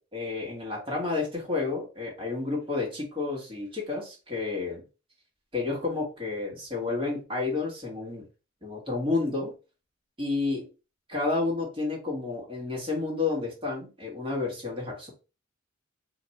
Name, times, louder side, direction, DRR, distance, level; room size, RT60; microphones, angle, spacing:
voice 1, 0.1-4.8 5.5-8.2 8.6-9.5 10.2-10.7 11.1-15.1, left 3 dB, 25° right, -2 dB, 1.3 m, -30 dB
2.5 x 2.3 x 4.0 m, 0.32 s
head